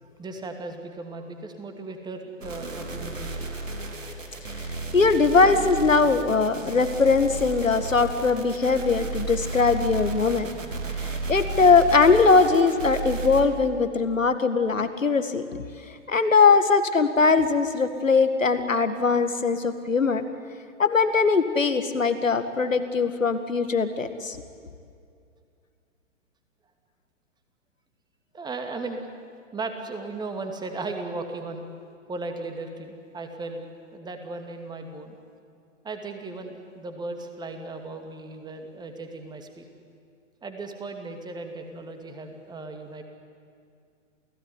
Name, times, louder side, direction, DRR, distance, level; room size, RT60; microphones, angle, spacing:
voice 1, 0.0-3.5 4.0-4.1 28.3-29.1 29.5-31.6 32.1-33.6 33.9-35.2 35.8-39.7 40.4-43.0, right 3 dB, 10° right, 5 dB, 2.4 m, -36 dB
sound 1, 2.4-13.4, right 2 dB, 75° right, 3.0 m, -33 dB
voice 2, 4.9-10.5 11.3-15.6 16.1-20.2 20.8-24.4, left 4 dB, 80° left, 9 dB, 2.1 m, -21 dB
28.5 x 16.5 x 9.8 m, 2.3 s
figure-of-eight pair, 115°, 38 cm